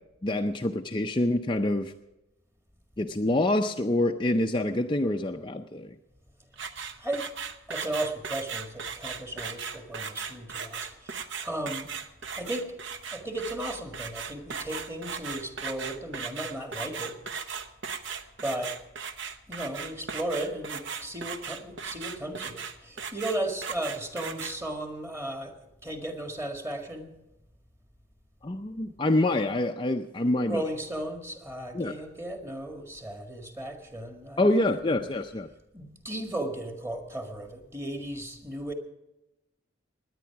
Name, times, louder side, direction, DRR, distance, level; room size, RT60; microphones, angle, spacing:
voice 1, 0.2-1.9 3.0-6.0 28.4-30.6 31.7-31.9 34.4-35.5, left 1 dB, 25° left, 4 dB, 0.5 m, -26 dB
sound 1, 6.5-24.6, right 6 dB, 60° right, 0.9 m, -37 dB
voice 2, 7.0-7.3 7.7-11.9 12.3-12.7 13.1-17.2 18.4-18.7 19.5-25.6 25.8-27.1 30.4-35.0 35.7-38.7, right 1 dB, 15° right, 4 dB, 1.7 m, -35 dB
18.0 x 10.5 x 5.8 m, 0.96 s
head